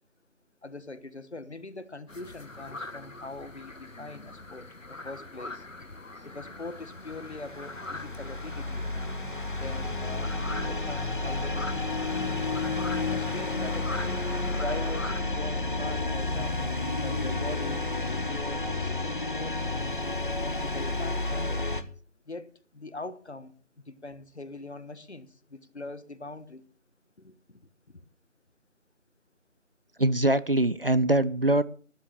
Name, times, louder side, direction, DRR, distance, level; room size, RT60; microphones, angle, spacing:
voice 1, 0.6-4.7 5.0-5.6 6.2-8.9 9.6-10.3 10.7-12.3 13.1-14.1 14.6-16.6 17.0-19.8 20.4-21.7 22.3-23.5 23.9-26.6 27.2-27.6, left 2 dB, 60° left, 1.5 m, -42 dB
sound 1, 2.1-15.2, left 2 dB, 80° left, 1.8 m, -42 dB
sound 2, 6.9-21.8, left 2 dB, 40° left, 1.0 m, -31 dB
sound 3, 7.6-20.4, left 1 dB, 80° right, 5.8 m, -47 dB
voice 2, 30.0-31.6, right 1 dB, 50° right, 0.6 m, -23 dB
12.5 x 9.6 x 6.6 m
figure-of-eight pair, 165°, 38 cm